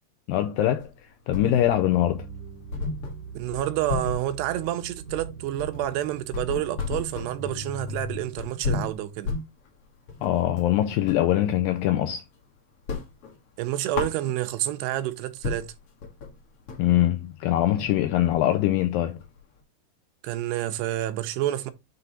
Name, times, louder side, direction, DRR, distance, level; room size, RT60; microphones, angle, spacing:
voice 1, 0.3-0.9 1.3-2.3 10.2-12.2 16.8-19.2, left 13 dB, 85° left, 2.1 m, -23 dB
sound 1, 0.8-2.0 2.3-2.4 2.7-11.3 11.7-12.4 12.7-14.7 15.1-15.2 15.4-19.6, left 4 dB, 55° left, 1.6 m, -34 dB
sound 2, 1.4-8.5, right 3 dB, 50° right, 3.9 m, -40 dB
voice 2, 3.3-9.3 13.6-15.7 20.2-21.7, right 13 dB, 90° right, 2.9 m, -29 dB
9.6 x 3.5 x 4.2 m
omnidirectional pair, 4.7 m